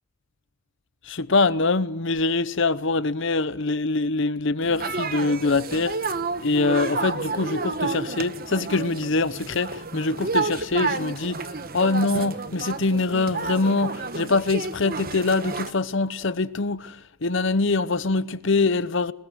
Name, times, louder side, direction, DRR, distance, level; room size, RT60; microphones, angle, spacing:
voice 1, 1.0-6.1 6.4-19.1, left 3 dB, 55° left, 0.8 m, -24 dB
sound 1, 4.6-15.7, right 4 dB, 45° right, 1.2 m, -30 dB
23.5 x 21.0 x 8.0 m
head